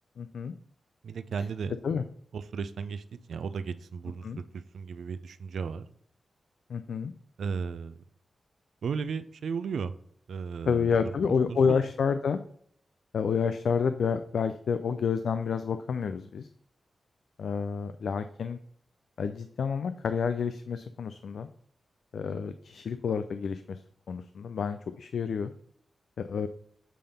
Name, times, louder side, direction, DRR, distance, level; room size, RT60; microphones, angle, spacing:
voice 1, 0.2-0.5 1.8-2.0 4.2-4.4 6.7-7.1 10.7-12.4 13.1-16.5 17.4-18.6 19.2-21.5 22.1-23.8 24.1-25.5 26.2-26.5, left 6 dB, 75° left, 10 dB, 0.4 m, -29 dB
voice 2, 1.0-1.7 2.3-3.0 3.3-5.9 7.4-8.0 8.8-9.9 10.3-10.9 11.5-11.8, right 6 dB, 85° right, 12 dB, 0.4 m, -35 dB
7.5 x 3.4 x 5.4 m, 0.65 s
wide cardioid pair, 135°, 0 cm